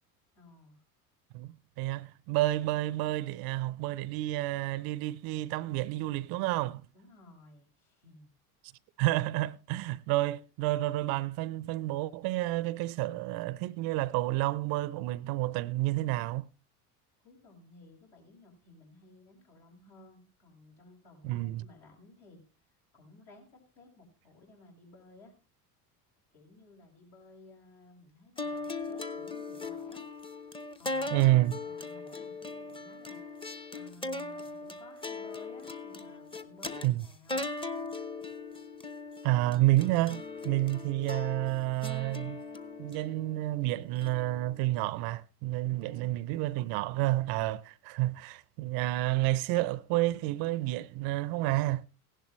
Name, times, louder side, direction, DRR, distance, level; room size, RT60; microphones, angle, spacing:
voice 1, 0.3-0.8 6.9-8.3 17.2-22.4 22.9-25.3 26.3-30.1 30.8-31.3 31.6-37.5 45.7-46.2, left 3 dB, 60° left, 5.8 m, -56 dB
voice 2, 1.3-6.8 9.0-16.5 21.2-21.6 31.1-31.6 36.8-37.0 39.2-42.4 42.8-51.8, right 17 dB, 55° right, 0.6 m, -30 dB
sound 1, 28.4-44.8, left 3 dB, 10° left, 0.9 m, -39 dB
16.0 x 11.0 x 3.1 m
hypercardioid pair, 75°, 46 cm